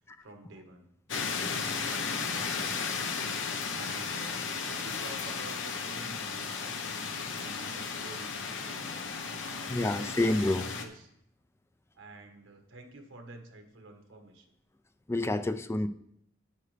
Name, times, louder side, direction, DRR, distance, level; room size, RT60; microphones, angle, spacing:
voice 1, 0.2-0.9 1.9-3.0 3.7-8.9 9.4-11.1 11.9-14.5, right 2 dB, 85° right, 4 dB, 1.3 m, -49 dB
sound 1, 1.1-10.8, left 5 dB, 75° left, 0.9 m, -35 dB
voice 2, 9.7-10.7 15.1-15.9, left 1 dB, 15° left, 10 dB, 0.4 m, -28 dB
9.6 x 9.4 x 3.3 m, 0.73 s
head